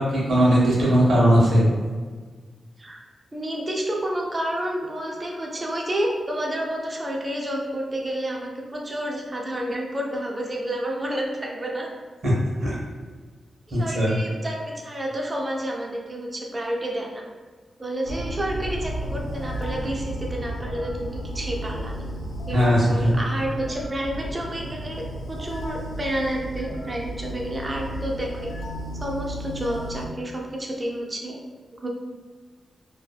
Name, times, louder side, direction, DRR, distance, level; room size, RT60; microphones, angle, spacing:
voice 1, 0.0-1.7 12.2-12.3 12.6-12.8 13.7-14.2 22.5-23.2, equal, 65° right, -6 dB, 0.9 m, -19 dB
voice 2, 3.3-11.9 13.7-17.2 17.8-22.1 22.5-25.0 25.3-28.5 29.0-31.4 31.8-31.9, right 1 dB, 20° right, -1 dB, 0.3 m, -30 dB
sound 1, 18.0-30.1, right 1 dB, 80° left, 0.4 m, -33 dB
2.6 x 2.3 x 2.3 m, 1.5 s
wide cardioid pair, 170°, 0 cm